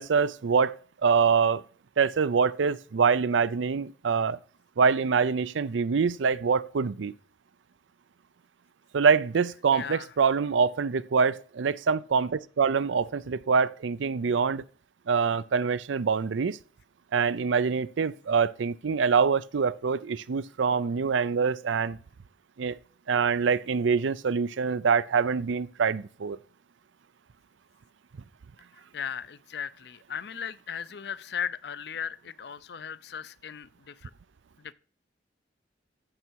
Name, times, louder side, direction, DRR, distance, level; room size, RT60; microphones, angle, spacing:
voice 1, 0.0-1.6 2.0-4.4 4.8-7.1 8.9-14.6 15.1-16.6 17.1-22.0 22.6-22.8 23.1-26.4, right 5 dB, 90° right, 0.5 m, -25 dB
voice 2, 9.7-10.1 28.9-34.1 34.6-34.7, left 7 dB, 60° left, 0.5 m, -37 dB
14.5 x 6.7 x 4.6 m
head